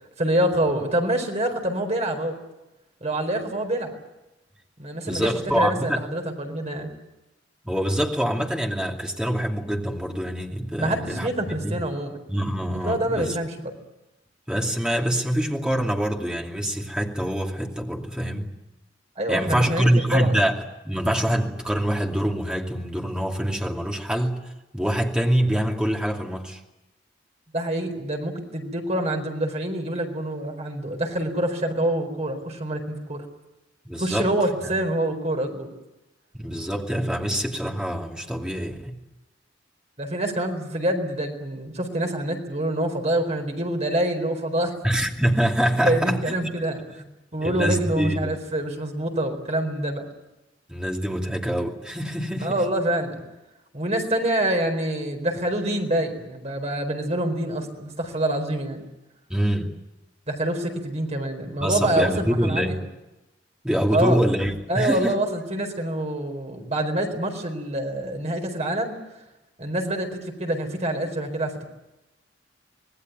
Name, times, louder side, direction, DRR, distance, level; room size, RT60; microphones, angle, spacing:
voice 1, 0.2-2.4 3.0-3.9 4.8-6.9 10.8-12.2 12.7-13.7 19.2-20.3 27.5-33.3 34.0-35.7 40.0-44.7 45.8-46.8 47.3-50.1 52.4-53.2 53.7-58.8 60.3-62.8 63.9-64.2 64.7-69.0 69.6-71.7, right 1 dB, 35° right, 4 dB, 4.5 m, -26 dB
voice 2, 5.1-6.0 7.6-11.3 11.6-11.8 12.3-13.4 14.5-18.5 19.3-24.4 24.7-26.6 33.8-34.3 34.6-34.7 36.3-38.9 44.8-46.3 47.4-48.4 50.7-52.6 59.3-59.8 61.6-62.8 63.6-65.2, equal, 5° right, 1 dB, 2.6 m, -25 dB
26.0 x 19.5 x 9.4 m, 1.0 s
head